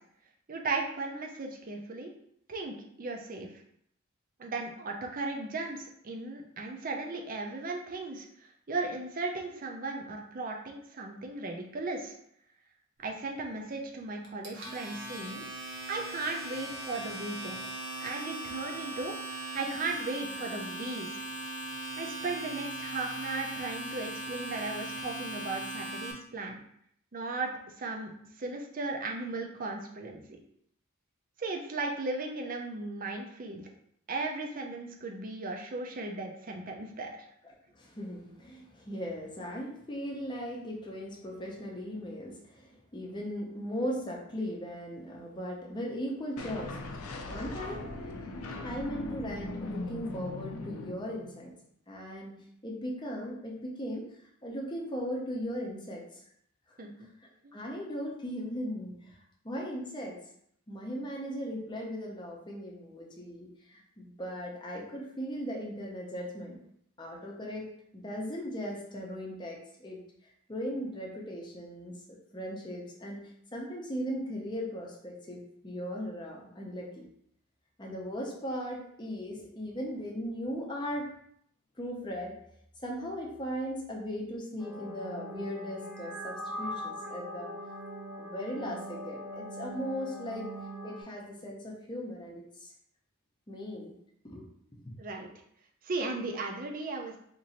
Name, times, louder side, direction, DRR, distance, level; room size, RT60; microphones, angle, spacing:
voice 1, 0.5-2.1 2.5-3.5 4.4-12.1 13.0-17.6 18.0-21.2 22.0-26.6 27.1-27.5 27.8-30.4 31.4-33.7 34.1-37.1 56.8-57.1 57.4-57.5 95.0-95.3 95.8-97.2, right 3 dB, 40° right, 2 dB, 0.5 m, -36 dB
Domestic sounds home sounds, 14.2-26.1, right 1 dB, 55° right, 0.9 m, -39 dB
voice 2, 37.8-46.9 47.3-47.8 48.6-51.5 51.9-52.3 52.6-54.0 54.4-56.0 57.5-59.1 59.4-60.1 60.7-66.6 67.0-67.7 67.9-70.0 70.5-71.9 72.3-73.2 73.5-77.0 77.8-81.0 81.8-82.3 82.8-87.5 88.2-90.5 90.8-92.7 93.5-93.9 94.2-94.4, equal, 20° left, -2 dB, 0.7 m, -38 dB
sound 1, 46.4-51.5, left 2 dB, 80° left, 0.5 m, -39 dB
sound 2, 84.6-91.0, equal, 5° left, 1.0 m, -41 dB
2.9 x 2.7 x 4.0 m, 0.70 s
head